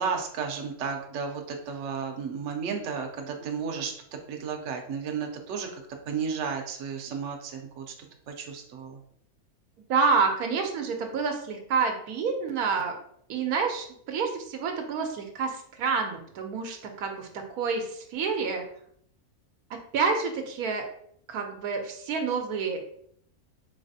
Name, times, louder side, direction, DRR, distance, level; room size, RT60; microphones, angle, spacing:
voice 1, 0.0-3.9 4.3-5.7 6.1-7.9 8.3-9.0, right 6 dB, 65° right, 3 dB, 0.9 m, -33 dB
voice 2, 9.9-12.9 13.3-18.6 19.9-20.9 21.3-22.8, right 5 dB, 85° right, 3 dB, 1.1 m, -28 dB
4.0 x 3.2 x 2.7 m, 0.66 s
omnidirectional pair, 1.6 m